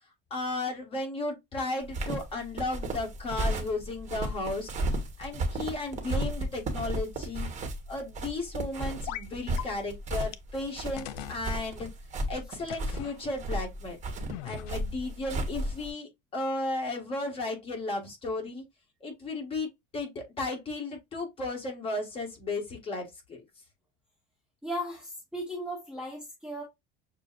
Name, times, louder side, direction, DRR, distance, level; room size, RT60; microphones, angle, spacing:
voice 1, 0.3-7.5 7.9-11.9 12.3-14.0 14.4-18.6 19.0-23.4, left 2 dB, 25° left, 1.6 m, -34 dB
sound 1, 1.8-15.9, right 1 dB, 35° right, 1.2 m, -33 dB
sound 2, 9.1-9.3 9.6-9.7 10.3-10.4 11.0-11.4 12.7-13.2 14.3-15.0, left 12 dB, 80° left, 0.4 m, -39 dB
voice 2, 24.6-26.6, equal, 5° right, 0.9 m, -36 dB
6.6 x 2.3 x 2.4 m
cardioid pair, 145°, 21 cm